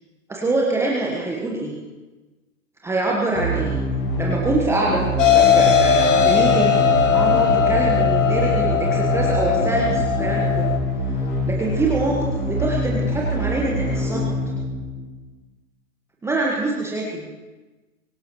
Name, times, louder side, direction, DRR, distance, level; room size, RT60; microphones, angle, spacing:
voice 1, 0.3-1.8 2.8-3.8 4.2-6.8 7.1-10.7 11.0-11.1 11.4-14.3 16.2-17.3, right 2 dB, 5° right, -3 dB, 1.4 m, -24 dB
sound 1, 3.3-15.3, equal, 45° left, 6.6 m, -25 dB
sound 2, 5.2-10.8, left 7 dB, 65° left, 2.3 m, -18 dB
24.5 x 17.5 x 3.2 m, 1.2 s
figure-of-eight pair, 115°, 42 cm